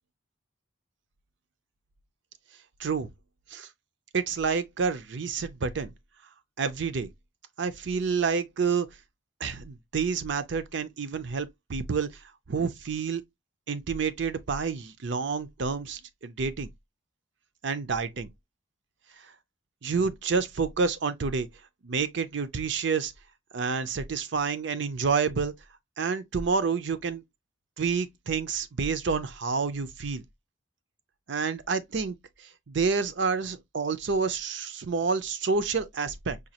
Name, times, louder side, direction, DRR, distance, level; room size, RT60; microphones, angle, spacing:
voice 1, 2.8-3.1 3.5-3.7 4.1-5.9 6.6-7.1 7.6-8.9 9.4-12.1 12.5-13.2 13.7-16.7 17.6-18.3 19.8-21.5 21.8-23.1 23.5-25.5 26.0-27.2 27.8-30.2 31.3-36.4, right 5 dB, 60° right, 0.5 m, -29 dB
5.0 x 2.3 x 2.8 m
head